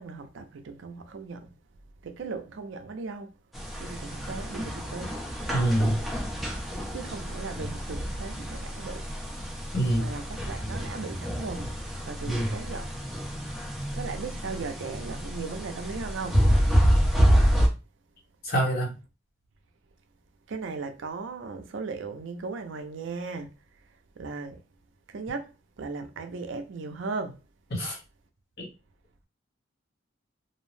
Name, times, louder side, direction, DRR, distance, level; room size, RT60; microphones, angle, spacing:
voice 1, 0.0-1.5 2.0-3.3 3.8-5.1 6.9-9.0 9.9-11.7 12.1-12.9 13.9-16.4 17.4-17.5 20.5-23.5 24.2-24.6 25.1-27.4, right 4 dB, 65° right, 0.4 m, -37 dB
sound 1, 3.5-17.7, equal, ahead, 0.5 m, -28 dB
voice 2, 5.5-6.0 9.7-10.1 12.3-12.5 18.4-18.9 27.7-28.0 28.6-28.7, right 1 dB, 50° left, 1.1 m, -25 dB
2.6 x 2.0 x 3.1 m
head